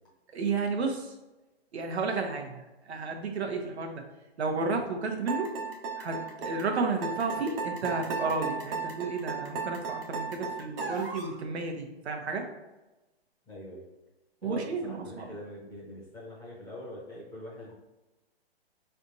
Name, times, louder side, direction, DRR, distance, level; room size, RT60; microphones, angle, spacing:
voice 1, 0.3-1.1 1.7-4.0 4.4-5.6 6.0-12.5 14.4-15.3, right 4 dB, 85° right, 3 dB, 0.9 m, -32 dB
sound 1, 5.3-11.3, right 5 dB, 60° right, 0.9 m, -35 dB
voice 2, 13.5-13.8 14.4-17.7, left 1 dB, 10° left, -7 dB, 0.9 m, -43 dB
4.0 x 3.4 x 2.6 m, 1.0 s
hypercardioid pair, 155°, 32 cm